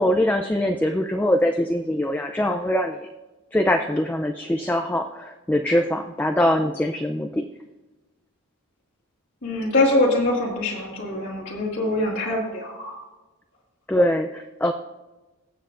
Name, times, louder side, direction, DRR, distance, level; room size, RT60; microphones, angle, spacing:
voice 1, 0.0-3.1 3.5-7.5 13.9-14.7, left 1 dB, 10° left, 3 dB, 0.4 m, -23 dB
voice 2, 9.4-12.9, left 2 dB, 55° left, -3 dB, 1.9 m, -23 dB
21.0 x 8.0 x 2.5 m, 1.1 s
head